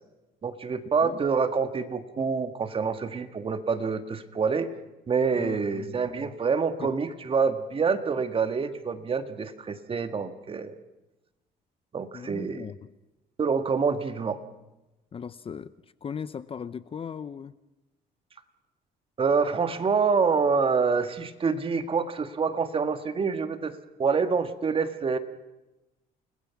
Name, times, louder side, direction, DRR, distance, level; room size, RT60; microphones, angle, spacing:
voice 1, 0.4-4.7 5.1-10.8 11.9-12.7 13.4-14.4 19.2-25.2, right 5 dB, 30° right, 9 dB, 1.8 m, -26 dB
voice 2, 5.3-6.3 6.8-6.9 12.1-12.9 15.1-15.7 16.0-17.5, left 7 dB, 35° left, 15 dB, 0.7 m, -38 dB
29.0 x 20.0 x 6.0 m, 1.0 s
cardioid pair, 110°, 17 cm